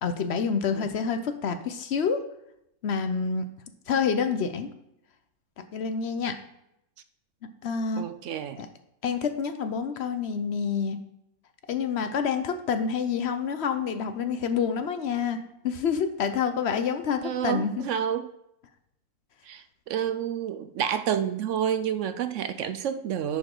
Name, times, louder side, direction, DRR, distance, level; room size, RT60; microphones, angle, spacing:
voice 1, 0.0-2.2 2.8-3.5 3.9-4.7 5.6-6.4 7.6-8.1 8.6-8.7 9.0-11.0 11.7-15.4 15.6-17.9, left 6 dB, 55° left, 9 dB, 0.8 m, -28 dB
voice 2, 8.0-8.6 17.2-18.3 19.5-23.4, right 9 dB, 70° right, 11 dB, 0.8 m, -29 dB
10.5 x 4.9 x 3.8 m, 0.81 s
omnidirectional pair, 1.5 m